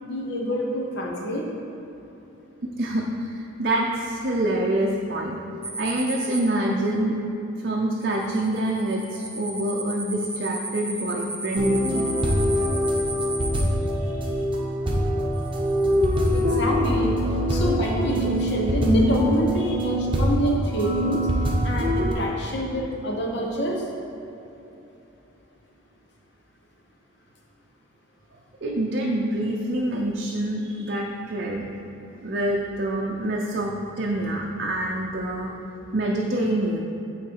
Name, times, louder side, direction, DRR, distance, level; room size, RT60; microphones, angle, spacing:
voice 1, 0.0-1.4 14.0-14.1 16.3-17.1 17.5-21.3 21.6-23.9, equal, 55° left, -1 dB, 1.1 m, -27 dB
voice 2, 2.6-5.4 5.8-7.2 7.6-12.0 28.6-31.7 32.2-35.7 35.9-36.8, right 1 dB, 50° right, -2 dB, 0.6 m, -26 dB
sound 1, 5.6-6.4 7.9-13.6 15.3-16.4, right 2 dB, 5° right, 0.4 m, -34 dB
sound 2, 11.6-22.1, equal, 25° right, 0.8 m, -23 dB
8.9 x 4.0 x 4.7 m, 2.9 s
head